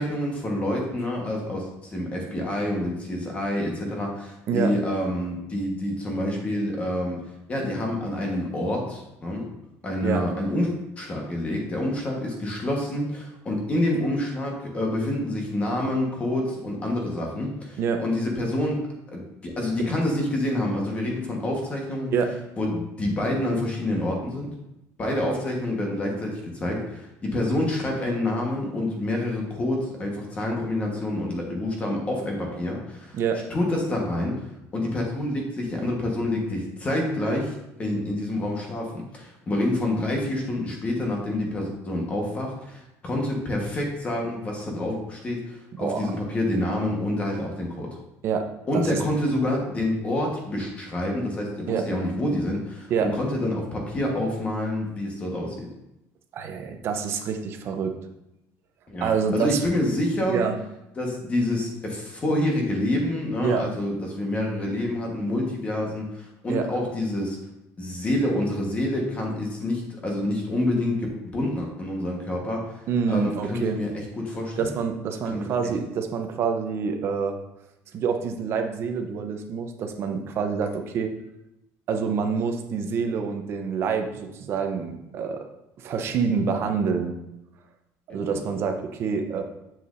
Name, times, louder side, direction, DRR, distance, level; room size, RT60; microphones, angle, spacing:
voice 1, 0.0-7.2 7.5-9.5 9.8-10.7 11.0-22.1 22.6-24.5 25.0-33.2 33.5-48.0 48.7-55.7 58.9-60.4 61.0-67.4 67.8-72.7 73.1-74.7 75.3-75.7 88.1-88.4, left 1 dB, 20° left, 0 dB, 1.2 m, -27 dB
voice 2, 45.8-46.1 48.2-48.5 48.7-49.0 51.7-51.9 52.9-53.1 56.3-57.9 59.0-59.6 60.3-60.6 63.4-63.7 66.5-66.7 72.9-73.8 74.6-77.4 77.9-81.1 81.9-85.5 85.8-87.2 88.1-89.4, right 6 dB, 40° right, 5 dB, 0.7 m, -26 dB
7.5 x 6.8 x 2.6 m, 0.89 s
cardioid pair, 180°, 6 cm